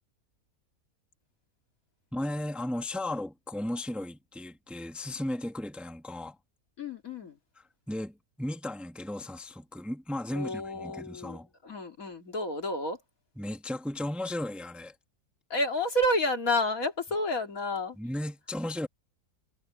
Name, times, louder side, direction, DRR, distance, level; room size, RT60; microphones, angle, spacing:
voice 1, 2.1-6.4 7.6-11.5 13.4-14.9 18.0-18.9, left 1 dB, ahead, 1.5 m, -35 dB
voice 2, 6.8-7.4 10.3-13.0 15.5-18.0, left 1 dB, 60° left, 2.9 m, -30 dB
omnidirectional pair, 1.6 m